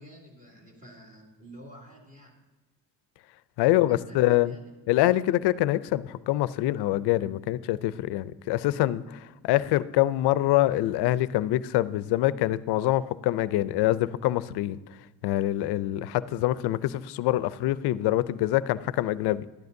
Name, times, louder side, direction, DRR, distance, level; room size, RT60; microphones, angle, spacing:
voice 1, 0.0-2.4 3.6-4.7, right 1 dB, 20° right, -2 dB, 2.6 m, -49 dB
voice 2, 3.6-4.5 4.9-14.8 15.2-19.4, left 15 dB, 75° left, 17 dB, 0.5 m, -25 dB
12.0 x 12.0 x 2.6 m, 1.2 s
cardioid pair, 105°, 40 cm